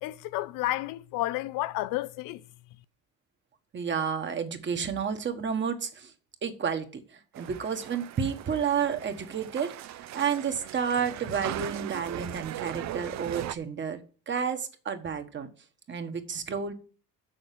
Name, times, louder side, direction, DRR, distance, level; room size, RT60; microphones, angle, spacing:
voice 1, 0.0-2.4, left 16 dB, 90° left, 0.7 m, -31 dB
voice 2, 3.7-6.1 6.4-15.5 15.9-16.7, right 7 dB, 35° right, 1.4 m, -31 dB
sound 1, 7.3-13.5, right 13 dB, 55° right, 0.6 m, -39 dB
7.0 x 6.5 x 7.6 m
cardioid pair, 120°, 32 cm